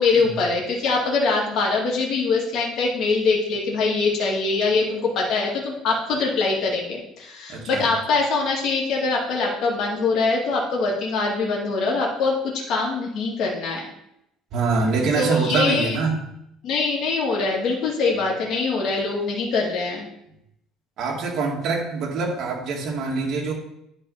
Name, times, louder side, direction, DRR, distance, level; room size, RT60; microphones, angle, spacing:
voice 1, 0.0-13.8 15.2-16.0 16.6-20.1, left 3 dB, 50° left, -2 dB, 2.1 m, -23 dB
voice 2, 7.5-7.9 14.5-16.2 21.0-23.5, right 4 dB, 50° right, -1 dB, 2.3 m, -24 dB
9.9 x 4.2 x 5.6 m, 0.79 s
cardioid pair, 150°, 0 cm